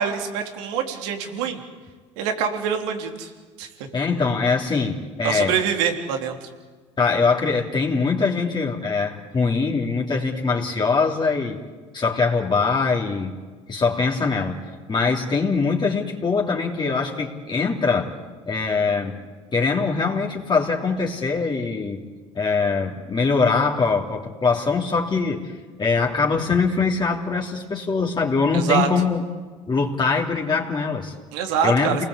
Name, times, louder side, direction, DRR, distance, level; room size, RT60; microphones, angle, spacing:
voice 1, 0.0-1.6 2.2-3.3 3.6-3.7 5.2-6.5 28.5-28.9 31.3-32.0, right 7 dB, 75° right, 4 dB, 3.4 m, -24 dB
voice 2, 3.9-5.5 7.0-11.6 11.9-13.4 13.7-18.1 18.5-19.2 19.5-22.0 22.3-25.5 25.8-29.2 29.7-31.1 31.6-31.9, left 4 dB, 30° left, -1 dB, 3.3 m, -22 dB
29.0 x 20.0 x 8.2 m, 1.4 s
hypercardioid pair, 75°, 15 cm